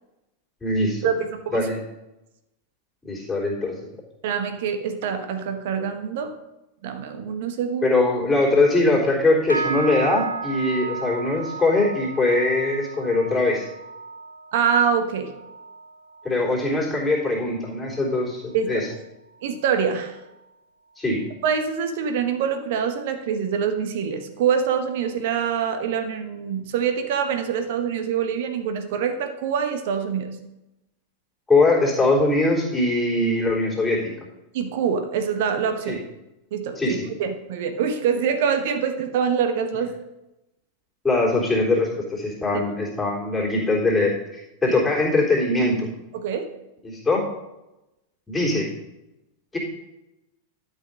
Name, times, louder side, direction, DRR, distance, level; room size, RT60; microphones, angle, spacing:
voice 1, 0.6-1.1 1.5-1.8 3.1-3.7 7.8-13.6 16.2-18.4 18.7-18.8 21.0-21.2 31.5-34.1 35.9-36.0 36.8-37.0 41.0-45.9 46.8-47.2 48.3-48.7 49.5-49.6, left 2 dB, 10° left, -4 dB, 3.6 m, -21 dB
voice 2, 4.2-6.3 6.8-8.0 14.5-15.3 18.5-18.9 19.4-20.2 21.4-30.4 34.5-36.0 36.5-39.9 44.7-44.8 46.1-46.4, right 7 dB, 50° right, 7 dB, 1.1 m, -25 dB
sound 1, 9.5-19.0 19.3-19.8 20.2-20.5 21.1-21.2, right 4 dB, 85° right, 0.7 m, -35 dB
12.0 x 5.6 x 5.4 m, 0.95 s
figure-of-eight pair, 90°, 0 cm